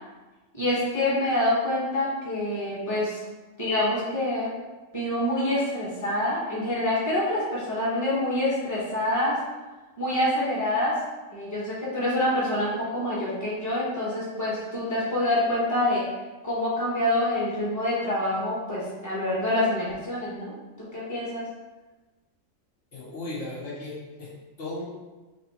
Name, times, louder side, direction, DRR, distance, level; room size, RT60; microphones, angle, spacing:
voice 1, 0.5-3.2 3.6-4.5 4.9-9.4 10.0-10.9 11.3-16.0 16.4-20.5 20.9-21.4, left 1 dB, 15° left, -8 dB, 1.2 m, -26 dB
voice 2, 22.9-24.3 24.6-24.9, left 2 dB, 65° left, -7 dB, 1.3 m, -36 dB
3.3 x 2.8 x 4.2 m, 1.2 s
omnidirectional pair, 1.4 m